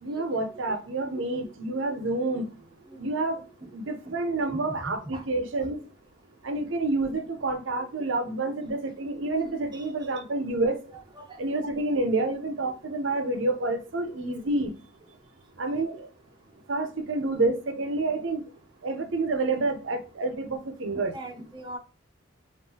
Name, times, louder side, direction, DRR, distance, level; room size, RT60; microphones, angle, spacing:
voice 1, 0.0-2.5 3.0-3.4 3.7-5.8 6.4-10.8 11.4-14.7 15.6-16.1 16.7-18.4 18.8-21.1, right 2 dB, 80° right, 0.7 m, -28 dB
voice 2, 1.1-1.5 2.9-3.0 3.6-3.7 4.1-4.2 4.5-5.2 9.7-9.9 11.1-11.4 20.9-21.8, right 1 dB, 25° right, 0.9 m, -41 dB
5.4 x 2.6 x 2.8 m
head